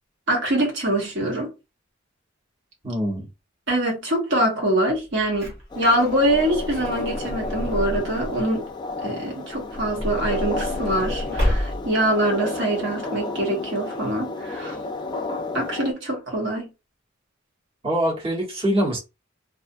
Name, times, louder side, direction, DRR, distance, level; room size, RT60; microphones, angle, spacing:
voice 1, 0.3-1.5 3.7-8.7 9.0-14.8 15.5-16.7, right 1 dB, 60° right, 1.2 m, -24 dB
voice 2, 2.8-3.3 17.8-19.0, equal, 30° right, 1.1 m, -24 dB
Truck / Door, 5.2-8.5 9.5-12.1 12.8-12.9 13.0-13.2, equal, 80° right, 1.3 m, -29 dB
sound 1, 5.7-15.9, left 3 dB, 20° left, 0.4 m, -32 dB
2.6 x 2.3 x 2.5 m
head